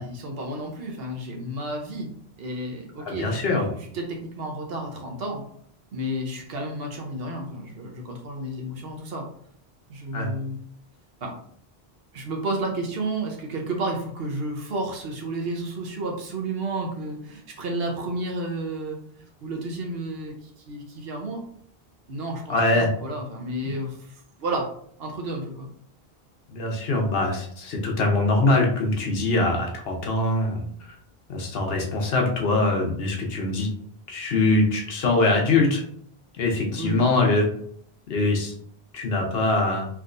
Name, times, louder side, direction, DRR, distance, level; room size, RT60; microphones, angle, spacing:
voice 1, 0.0-2.1 2.4-3.4 3.8-5.4 5.9-9.3 9.9-10.6 11.2-11.3 12.1-21.4 22.1-24.7 25.0-25.7 36.8-37.1, right 1 dB, 70° right, 2 dB, 1.0 m, -31 dB
voice 2, 3.0-3.7 10.1-10.3 22.5-22.9 26.5-30.6 30.9-31.0 31.3-33.7 34.1-35.8 36.3-37.5 38.1-38.5 38.9-39.9, left 2 dB, 70° left, 1 dB, 1.0 m, -23 dB
3.5 x 2.9 x 2.5 m, 0.63 s
omnidirectional pair, 1.0 m